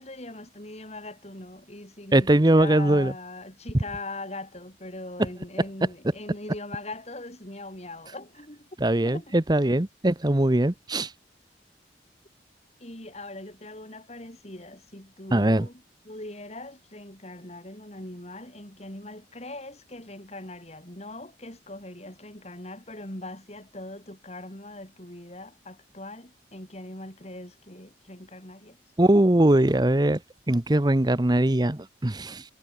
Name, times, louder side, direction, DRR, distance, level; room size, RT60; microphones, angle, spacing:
voice 1, 0.0-9.4 12.8-28.8, left 2 dB, 35° left, 5.5 m, -41 dB
voice 2, 2.1-3.1 8.8-11.1 15.3-15.7 29.0-30.2 30.5-32.4, right 1 dB, 25° right, 0.9 m, -21 dB
head